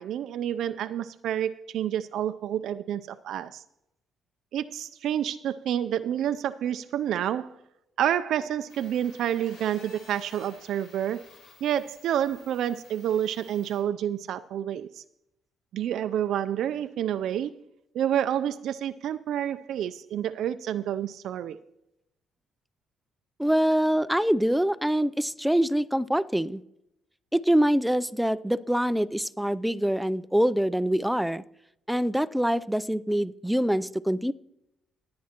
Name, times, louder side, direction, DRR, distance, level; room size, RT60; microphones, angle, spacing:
voice 1, 0.0-3.6 4.5-7.5 8.0-11.3 11.6-15.0 15.7-17.5 17.9-21.6, right 10 dB, 75° right, 11 dB, 0.4 m, -29 dB
sound 1, 8.7-13.8, left 3 dB, 85° left, 4.9 m, -53 dB
voice 2, 23.4-26.6 27.3-31.4 31.9-34.3, equal, 5° right, 16 dB, 0.4 m, -25 dB
16.5 x 9.5 x 2.9 m, 0.83 s
cardioid pair, 90°, 0 cm